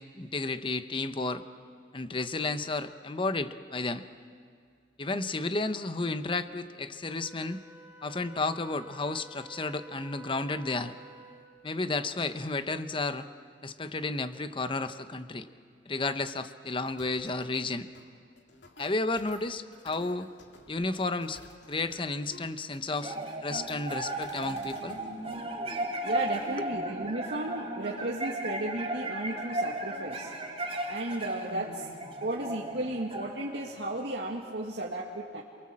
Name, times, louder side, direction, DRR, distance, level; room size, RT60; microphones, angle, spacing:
voice 1, 0.0-1.4 1.9-4.0 5.0-7.6 8.0-10.9 11.6-13.3 13.6-15.5 15.9-17.9 18.8-20.3 20.7-21.4 21.7-23.2 23.4-25.0, left 3 dB, 30° left, 10 dB, 0.9 m, -32 dB
Wind instrument woodwind instrument, 7.1-11.7, right 2 dB, 10° right, 1.1 m, -51 dB
sound 1, 16.9-25.4, left 2 dB, 90° left, 2.5 m, -54 dB
sound 2, 23.0-34.6, right 1 dB, 30° right, 2.7 m, -36 dB
voice 2, 26.0-30.3 30.9-31.9 32.2-35.4, right 1 dB, 70° right, -2 dB, 1.9 m, -34 dB
28.0 x 23.0 x 7.6 m, 2.2 s
head